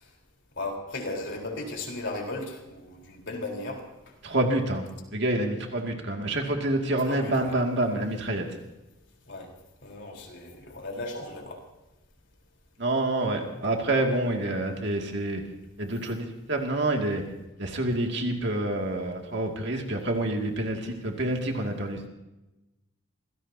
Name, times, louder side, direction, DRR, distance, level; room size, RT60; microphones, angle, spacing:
voice 1, 0.6-3.8 7.1-7.6 9.3-9.5 9.8-11.6, left 2 dB, 55° left, 0 dB, 4.1 m, -36 dB
voice 2, 4.2-4.9 5.1-8.5 12.8-15.4 15.8-17.2 17.6-22.0, right 1 dB, 55° right, 2 dB, 2.3 m, -27 dB
26.5 x 17.0 x 2.8 m, 0.99 s
head